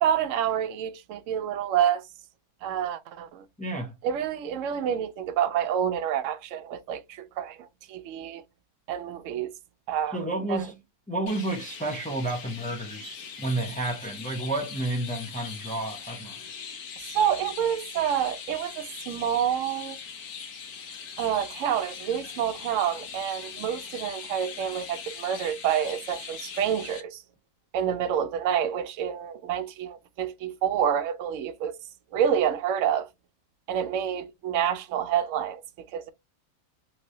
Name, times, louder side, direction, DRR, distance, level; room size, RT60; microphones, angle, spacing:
voice 1, 0.0-2.0 2.6-3.4 4.0-8.4 8.9-9.5 9.9-10.2 10.5-10.6 17.1-20.0 21.2-27.2 27.7-31.7 32.1-33.1 33.7-36.1, right 9 dB, 70° right, 0.8 m, -28 dB
voice 2, 3.6-4.0 10.1-10.8 11.1-16.4, right 2 dB, 10° left, 0.4 m, -31 dB
Chirp tweet, 11.3-27.0, left 6 dB, 80° left, 1.3 m, -41 dB
3.3 x 3.1 x 2.7 m
omnidirectional pair, 1.5 m